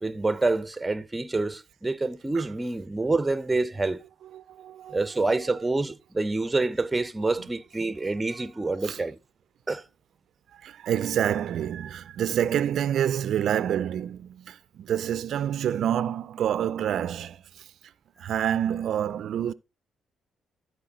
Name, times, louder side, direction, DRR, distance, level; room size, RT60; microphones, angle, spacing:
voice 1, 0.0-4.0 4.9-9.1 9.7-9.8, right 3 dB, 15° right, 0.6 m, -27 dB
voice 2, 4.2-5.1 5.4-5.6 8.3-9.0 10.5-17.9 18.2-19.5, right 10 dB, 70° right, 0.4 m, -28 dB
13.5 x 4.7 x 3.8 m
cardioid pair, 90°, 0 cm